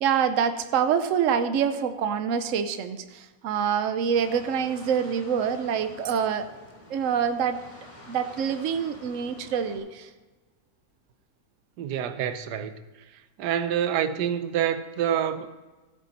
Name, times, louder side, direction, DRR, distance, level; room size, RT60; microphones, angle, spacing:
voice 1, 0.0-6.5 6.9-7.6 8.1-10.1, right 7 dB, 60° right, 1.0 m, -26 dB
sound 1, 4.1-9.8, left 1 dB, 25° left, 2.5 m, -48 dB
voice 2, 11.8-12.7 13.4-15.5, right 9 dB, 90° right, 1.3 m, -27 dB
14.0 x 8.7 x 4.1 m
omnidirectional pair, 1.7 m